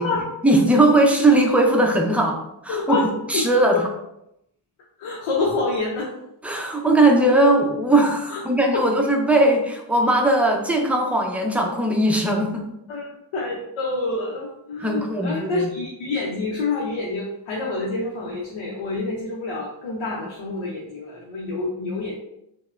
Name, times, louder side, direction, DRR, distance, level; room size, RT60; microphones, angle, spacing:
voice 1, 0.4-2.4 2.6-3.0 3.3-3.9 6.4-12.6 14.8-15.7, right 1 dB, 5° right, 1 dB, 0.5 m, -19 dB
voice 2, 2.7-3.8 5.0-6.1 8.3-8.4 8.7-8.8 12.9-22.1, left 3 dB, 80° left, -3 dB, 0.7 m, -27 dB
2.9 x 2.1 x 2.4 m, 0.81 s
cardioid pair, 50°, 47 cm